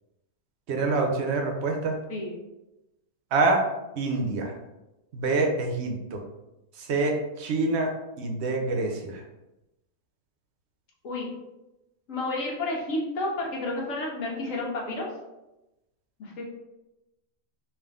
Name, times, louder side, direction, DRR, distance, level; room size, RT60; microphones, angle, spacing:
voice 1, 0.7-2.0 3.3-3.6 3.9-4.6 5.1-6.2 6.8-9.2, right 3 dB, 60° right, 2 dB, 0.8 m, -26 dB
voice 2, 2.1-2.4 11.0-11.3 12.1-15.1 16.2-16.4, left 2 dB, 70° left, -2 dB, 1.3 m, -31 dB
3.6 x 2.5 x 3.6 m, 0.97 s
omnidirectional pair, 1.5 m